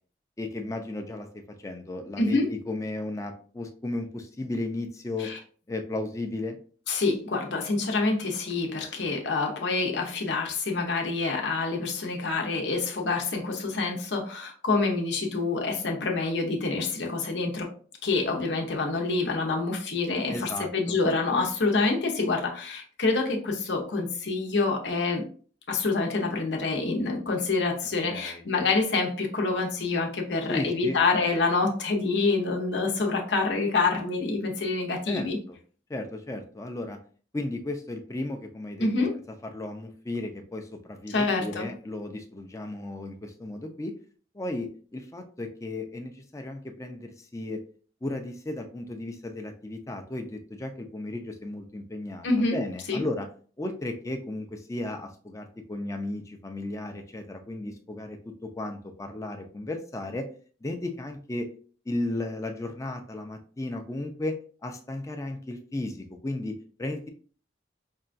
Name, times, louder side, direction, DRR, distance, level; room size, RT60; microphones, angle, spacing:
voice 1, 0.4-5.3 5.7-6.6 20.3-21.0 28.1-28.4 30.5-31.0 35.1-35.6 35.9-37.0 37.3-38.9 39.4-43.9 44.3-47.6 48.0-53.3 53.6-60.2 60.6-61.5 61.9-64.4 64.6-67.1, left 2 dB, 20° left, 4 dB, 0.5 m, -35 dB
voice 2, 2.2-2.5 5.2-5.4 6.9-17.7 18.0-25.2 25.7-35.4 38.8-39.2 41.1-41.7 52.2-52.6 52.9-53.0, left 3 dB, 85° left, 1 dB, 0.8 m, -27 dB
5.4 x 2.3 x 2.5 m, 0.43 s
head